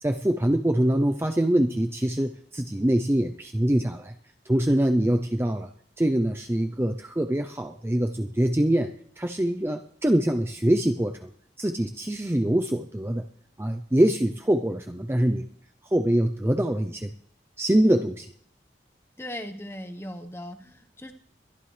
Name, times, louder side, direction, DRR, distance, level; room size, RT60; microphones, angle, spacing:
voice 1, 0.0-4.1 4.5-5.7 6.0-11.3 11.6-13.3 13.6-15.5 15.9-17.1 17.6-18.3, right 1 dB, 15° right, 5 dB, 0.5 m, -24 dB
voice 2, 19.2-21.1, left 1 dB, 15° left, 7 dB, 1.1 m, -38 dB
22.5 x 11.5 x 3.3 m, 0.64 s
head